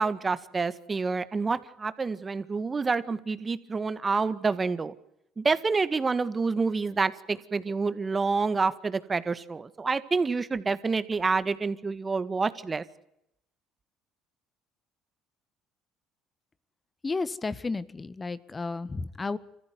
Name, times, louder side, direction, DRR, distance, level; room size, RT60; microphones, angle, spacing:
voice 1, 0.0-4.9 5.4-12.8, right 4 dB, 30° right, 14 dB, 1.8 m, -28 dB
voice 2, 17.0-19.4, left 3 dB, 25° left, 17 dB, 1.6 m, -32 dB
26.5 x 15.0 x 9.5 m, 0.81 s
hypercardioid pair, 70°, 0 cm